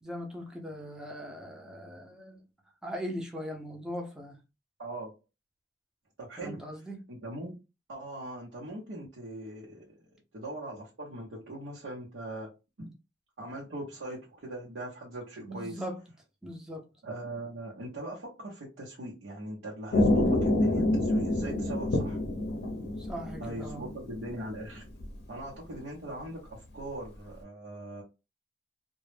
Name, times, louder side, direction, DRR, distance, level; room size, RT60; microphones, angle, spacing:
voice 1, 0.0-2.4 2.8-4.4 6.4-7.0 15.4-16.0 16.4-16.9 23.0-23.9, equal, 5° right, 0.5 m, -40 dB
voice 2, 4.8-5.1 6.2-6.6 7.1-7.6 7.9-10.0 10.3-12.5 12.8-12.9 13.4-15.8 17.0-22.2 23.4-24.9 25.3-28.0, right 1 dB, 85° right, 0.7 m, -40 dB
sound 1, 19.9-24.4 24.7-25.1, left 1 dB, 60° left, 0.6 m, -27 dB
2.1 x 2.0 x 3.1 m
head